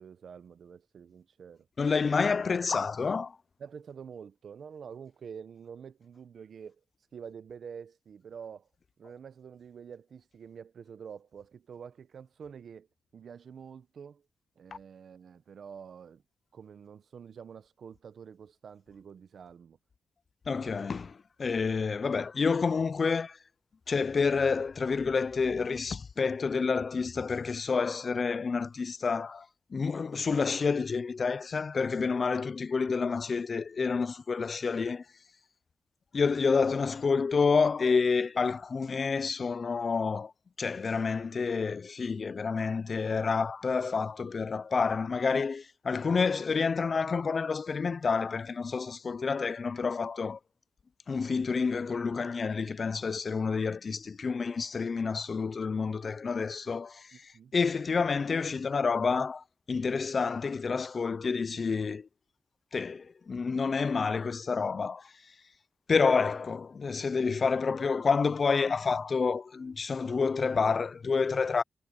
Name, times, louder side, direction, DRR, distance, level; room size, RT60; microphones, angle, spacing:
voice 1, 0.0-1.7 3.6-6.8 7.1-8.7 9.0-12.9 13.1-14.2 14.6-16.2 16.5-19.8 57.1-57.5, right 7 dB, 75° right, 1.0 m, -47 dB
voice 2, 1.8-3.4 20.5-23.4 23.9-29.5 29.7-35.0 36.1-40.3 40.6-50.4 51.1-57.2 57.5-62.1 62.7-65.1 65.9-71.6, left 5 dB, 55° left, 0.7 m, -29 dB
cardioid pair, 55°, 0 cm